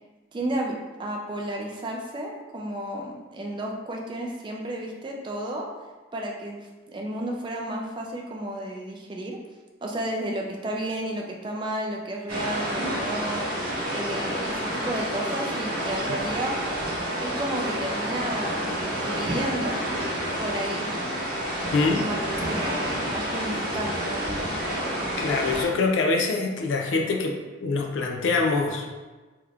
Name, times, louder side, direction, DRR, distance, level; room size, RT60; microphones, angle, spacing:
voice 1, 0.3-5.7 6.1-9.4 9.8-13.5 13.9-16.6 17.2-19.8 20.4-20.9 21.9-24.5, right 1 dB, 25° right, 0 dB, 0.3 m, -32 dB
sound 1, 12.3-25.6, equal, 50° right, 0.9 m, -29 dB
voice 2, 21.7-22.1 24.6-24.7 25.2-28.9, left 3 dB, 85° left, 2 dB, 0.4 m, -25 dB
3.5 x 2.8 x 2.4 m, 1.3 s
head